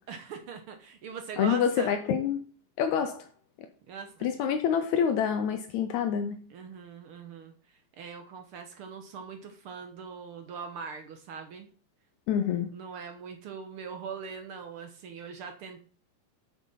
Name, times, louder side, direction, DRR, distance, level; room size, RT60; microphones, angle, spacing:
voice 1, 0.1-1.9 3.9-4.3 6.5-11.7 12.7-15.8, right 6 dB, 70° right, 5 dB, 1.3 m, -41 dB
voice 2, 1.4-2.4 2.8-3.3 4.2-6.4 12.3-12.7, left 8 dB, 80° left, 7 dB, 1.9 m, -27 dB
6.9 x 6.1 x 5.6 m, 0.42 s
omnidirectional pair, 3.6 m